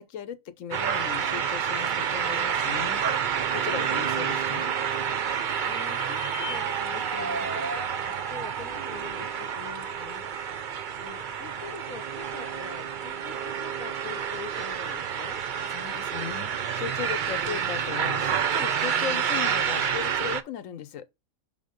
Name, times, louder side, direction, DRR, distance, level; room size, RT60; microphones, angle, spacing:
voice 1, 0.0-3.0 3.5-4.7 15.7-21.0, left 8 dB, 70° left, 1.1 m, -37 dB
sound 1, 0.7-20.4, right 8 dB, 60° right, 0.5 m, -29 dB
sound 2, 5.5-9.0, left 7 dB, 40° left, 0.8 m, -45 dB
voice 2, 5.6-7.6 8.1-10.3 11.0-15.4, left 7 dB, 90° left, 1.2 m, -44 dB
5.8 x 3.7 x 5.1 m
omnidirectional pair, 1.5 m